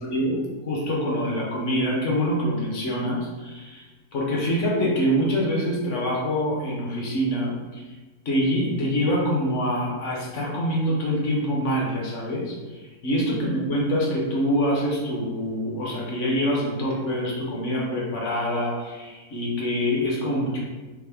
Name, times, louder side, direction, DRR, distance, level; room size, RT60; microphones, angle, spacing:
voice 1, 0.1-3.9 4.1-7.8 8.2-20.6, equal, 55° left, -3 dB, 1.2 m, -25 dB
3.6 x 3.6 x 3.5 m, 1.3 s
omnidirectional pair, 1.7 m